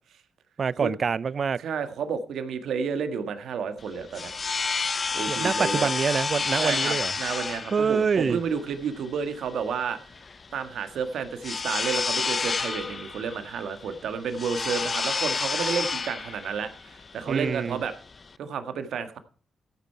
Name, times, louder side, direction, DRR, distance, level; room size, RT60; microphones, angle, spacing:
voice 1, 0.6-1.6 5.3-7.1 7.7-8.4 17.3-17.8, right 6 dB, 55° right, 0.5 m, -25 dB
voice 2, 1.6-4.3 5.1-5.9 6.5-10.0 10.5-17.9 18.4-19.2, right 6 dB, 75° right, 1.6 m, -31 dB
sound 1, 3.8-18.4, left 4 dB, 45° left, 0.7 m, -30 dB
14.5 x 9.0 x 4.6 m
supercardioid pair, 50°, 0 cm